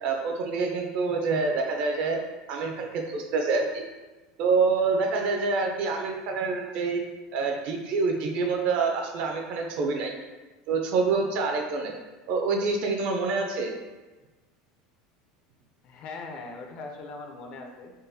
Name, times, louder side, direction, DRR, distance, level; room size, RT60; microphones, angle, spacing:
voice 1, 0.0-2.2 2.5-3.8 4.4-7.0 7.3-10.1 10.7-11.9 12.3-13.7, right 4 dB, 55° right, 3 dB, 0.5 m, -26 dB
voice 2, 15.8-17.9, left 3 dB, 50° left, 3 dB, 0.4 m, -40 dB
3.6 x 2.1 x 2.7 m, 1.2 s
supercardioid pair, 135°, 2 cm